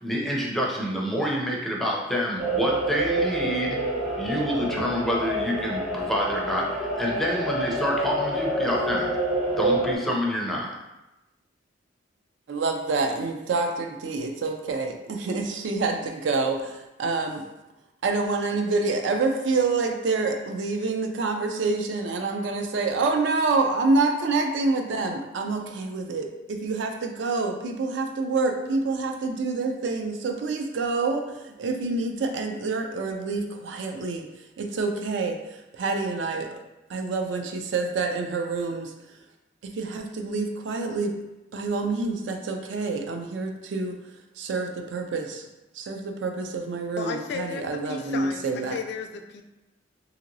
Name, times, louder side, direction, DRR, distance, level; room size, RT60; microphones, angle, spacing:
voice 1, 0.0-3.8 4.2-9.2 9.6-10.7, equal, ahead, -3 dB, 0.4 m, -27 dB
sound 1, 2.4-10.0, right 1 dB, 40° right, 0.7 m, -27 dB
voice 2, 12.5-17.4 18.0-34.3 34.6-36.5 36.9-38.9 39.6-41.1 41.5-44.0 44.4-45.5 45.7-48.8, right 3 dB, 70° right, 4 dB, 0.4 m, -27 dB
voice 3, 47.0-49.4, left 5 dB, 65° left, 5 dB, 0.3 m, -34 dB
2.9 x 2.8 x 2.6 m, 1.0 s
head